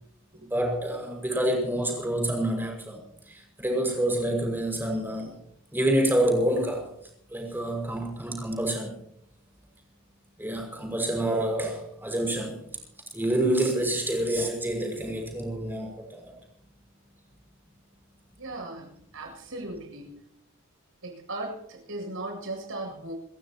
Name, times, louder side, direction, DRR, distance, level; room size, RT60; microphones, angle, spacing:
voice 1, 0.4-3.0 3.3-5.4 5.7-6.9 7.3-8.9 10.4-12.6 13.1-16.3, right 1 dB, 10° right, 1 dB, 6.1 m, -27 dB
voice 2, 18.4-20.3 21.0-23.1, right 2 dB, 65° right, 2 dB, 7.6 m, -37 dB
29.5 x 15.0 x 3.0 m, 0.69 s
head